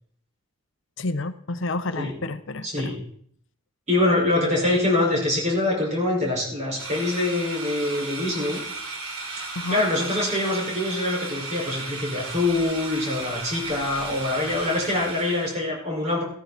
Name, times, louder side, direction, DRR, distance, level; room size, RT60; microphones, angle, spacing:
voice 1, 1.0-2.9 9.6-9.8, left 2 dB, 60° left, 12 dB, 0.7 m, -30 dB
voice 2, 2.6-3.0 3.9-8.6 9.7-16.2, left 2 dB, 35° right, -2 dB, 4.9 m, -24 dB
sound 1, 6.8-15.6, right 3 dB, 80° right, 3.5 m, -35 dB
14.5 x 13.5 x 4.1 m, 0.65 s
head